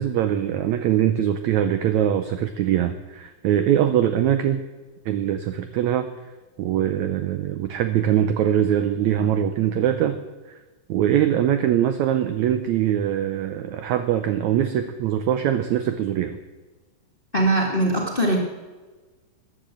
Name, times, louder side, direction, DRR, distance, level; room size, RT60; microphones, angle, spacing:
voice 1, 0.0-4.6 5.1-6.1 6.6-10.2 10.9-16.4, right 10 dB, 80° right, 9 dB, 1.7 m, -22 dB
voice 2, 17.3-18.4, right 1 dB, 20° left, 0 dB, 1.4 m, -21 dB
13.5 x 10.5 x 7.7 m, 1.3 s
omnidirectional pair, 4.1 m